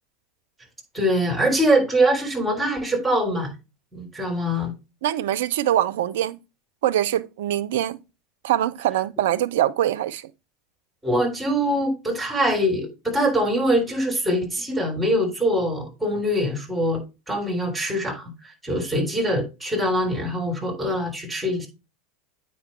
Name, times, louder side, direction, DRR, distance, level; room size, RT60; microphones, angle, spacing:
voice 1, 0.9-3.5 3.9-4.7 11.0-21.7, equal, 5° right, 3.8 m, -23 dB
voice 2, 5.0-6.4 6.8-8.0 8.4-10.2, right 12 dB, 60° right, 0.5 m, -23 dB
8.7 x 5.3 x 3.3 m
figure-of-eight pair, 80°, 0 cm